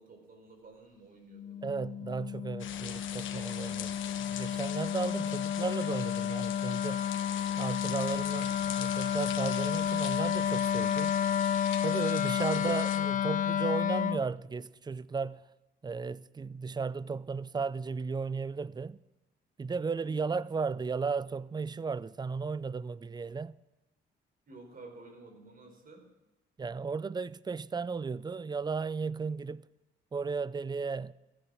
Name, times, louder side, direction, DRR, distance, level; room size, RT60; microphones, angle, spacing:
voice 1, 0.0-1.7 5.1-5.3 12.5-12.8 20.0-20.4 24.5-26.1, right 3 dB, 45° right, 4.5 m, -52 dB
Wind instrument woodwind instrument, 1.3-14.2, left 9 dB, 40° left, 0.4 m, -31 dB
voice 2, 1.6-7.1 7.6-11.2 11.8-15.4 15.8-19.0 19.6-23.6 26.6-29.7 30.1-31.1, right 5 dB, 20° right, 0.4 m, -35 dB
sound 1, 2.6-13.0, left 10 dB, 75° left, 1.2 m, -42 dB
15.5 x 11.0 x 6.3 m
cardioid pair, 90°, 20 cm